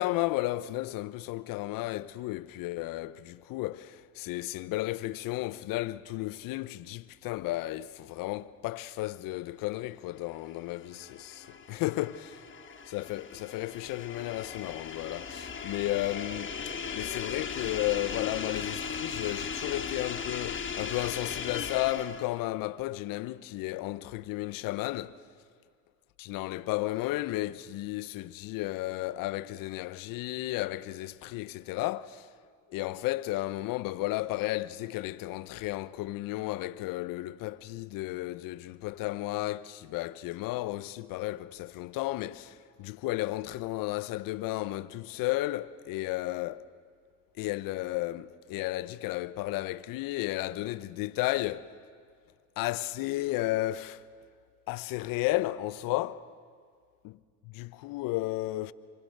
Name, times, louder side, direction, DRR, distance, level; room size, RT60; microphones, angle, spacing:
voice 1, 0.0-12.4 12.9-16.5 16.9-25.2 26.2-32.3 32.7-46.7 47.4-51.7 52.6-54.0 54.7-56.2 57.0-57.2 57.4-58.7, left 17 dB, 65° left, 0.8 m, -33 dB
sound 1, 9.3-19.7, right 6 dB, 60° right, 4.0 m, -55 dB
sound 2, 10.5-22.4, left 6 dB, 35° left, 1.4 m, -38 dB
26.0 x 24.5 x 6.6 m
supercardioid pair, 90°, 36 cm